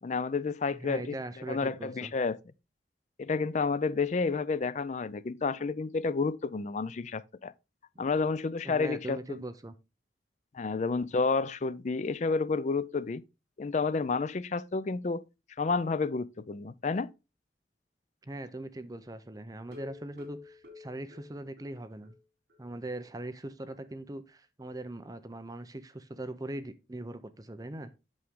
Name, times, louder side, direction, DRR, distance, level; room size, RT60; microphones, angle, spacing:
voice 1, 0.0-1.2 1.5-2.4 3.2-7.5 8.0-9.4 10.5-13.2 13.6-15.2 15.6-17.1, left 4 dB, 40° left, 0.4 m, -30 dB
voice 2, 0.7-2.1 8.6-9.8 18.2-22.2 22.6-27.9, right 1 dB, 20° right, 0.6 m, -41 dB
sound 1, 19.7-22.2 22.5-22.6 23.0-23.1 23.4-23.5, left 5 dB, 65° right, 3.5 m, -50 dB
8.5 x 6.3 x 3.7 m
head